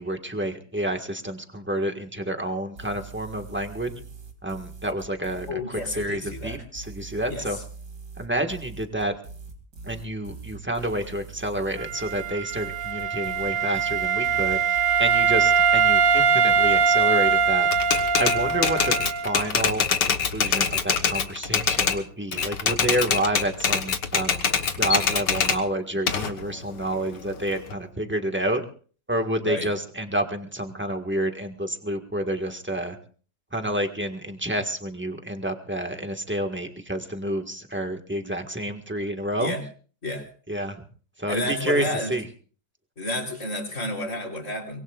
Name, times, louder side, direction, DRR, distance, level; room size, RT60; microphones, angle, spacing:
voice 1, 0.0-3.9 4.4-7.6 8.2-9.1 9.8-14.6 15.0-17.7 18.2-18.9 19.2-24.4 24.8-28.6 29.1-33.0 33.5-39.5 40.5-40.8 41.2-42.2, right 1 dB, 5° right, 4 dB, 1.5 m, -29 dB
sound 1, 2.8-18.6, right 4 dB, 70° right, 3.1 m, -42 dB
voice 2, 5.5-6.6 7.3-7.6 29.4-29.7 39.4-39.6 40.0-40.3 41.3-42.1 43.0-44.8, left 1 dB, 45° left, 1 dB, 4.1 m, -30 dB
Wind instrument woodwind instrument, 11.8-19.5, right 6 dB, 90° right, 1.8 m, -22 dB
Typewriter, 17.7-22.0 22.3-25.6 26.1-27.7, left 6 dB, 80° left, 2.0 m, -24 dB
24.0 x 21.5 x 2.5 m, 0.43 s
omnidirectional pair, 1.8 m